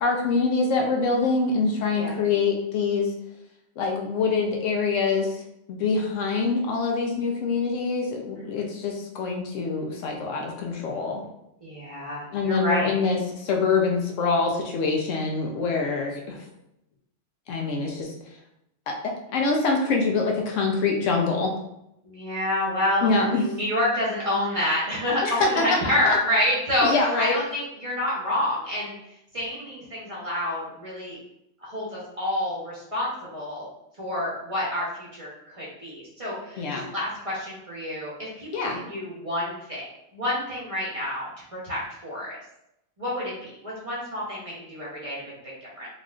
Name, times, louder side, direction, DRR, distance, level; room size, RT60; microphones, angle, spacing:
voice 1, 0.0-3.1 3.8-5.4 5.7-11.2 12.3-16.5 17.5-18.1 18.9-21.5 23.0-23.4 25.2-26.2 26.8-27.4 36.6-36.8 38.5-38.8, left 4 dB, 70° left, 0 dB, 0.9 m, -25 dB
voice 2, 8.4-8.7 11.6-13.0 22.0-28.9 29.3-31.2 31.6-33.7 34.0-42.4 43.0-45.9, left 1 dB, 30° right, -7 dB, 0.7 m, -28 dB
3.4 x 2.5 x 2.3 m, 0.81 s
omnidirectional pair, 1.4 m